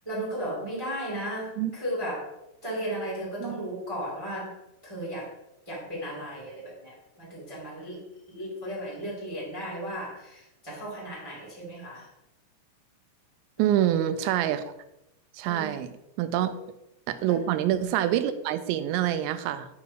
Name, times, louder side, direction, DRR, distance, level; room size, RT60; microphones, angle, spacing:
voice 1, 0.0-2.3 2.6-4.6 4.8-5.3 5.6-12.1 13.6-13.9 15.4-15.8 16.4-16.5 17.3-17.4, right 1 dB, 30° right, -5 dB, 0.6 m, -35 dB
voice 2, 13.6-14.6 15.3-15.9 16.2-16.5 17.1-19.7, right 11 dB, 90° right, 11 dB, 2.8 m, -26 dB
8.5 x 3.2 x 6.1 m, 0.88 s
omnidirectional pair, 5.1 m